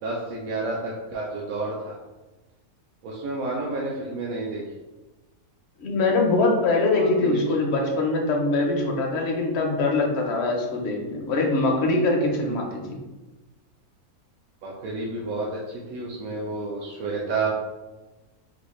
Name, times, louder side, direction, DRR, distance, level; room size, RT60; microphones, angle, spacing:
voice 1, 0.0-2.0 3.0-4.6 6.9-7.4 14.6-17.5, right 3 dB, 75° right, -4 dB, 1.0 m, -30 dB
voice 2, 5.8-13.0, left 2 dB, 55° left, 1 dB, 0.8 m, -23 dB
4.0 x 2.3 x 3.0 m, 1.1 s
omnidirectional pair, 1.6 m